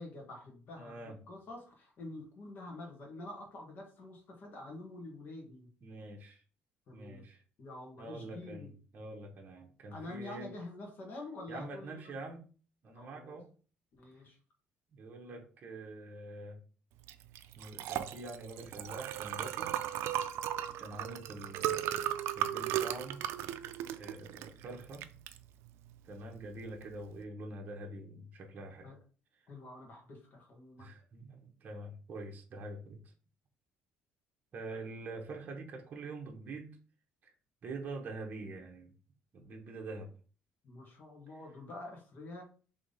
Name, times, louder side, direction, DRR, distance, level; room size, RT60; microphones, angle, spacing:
voice 1, 0.0-5.7 6.9-7.2 7.6-8.7 9.9-12.1 12.9-13.4 13.9-14.4 28.8-29.0 29.5-30.9 40.6-42.4, left 2 dB, 50° left, 0 dB, 1.7 m, -47 dB
voice 2, 0.8-1.2 5.8-6.4 6.9-7.4 8.0-10.5 11.5-12.4 12.8-13.5 14.9-16.6 17.6-19.7 20.2-20.5 20.8-22.1 22.3-23.2 23.9-25.0 26.0-28.9 30.8-33.0 34.5-36.8 37.2-37.3 37.6-38.9 39.3-40.1, right 2 dB, 40° right, 1 dB, 1.0 m, -45 dB
Liquid, 17.0-27.2, right 11 dB, 80° right, 0.4 m, -37 dB
3.6 x 3.5 x 4.0 m, 0.39 s
cardioid pair, 120°, 4 cm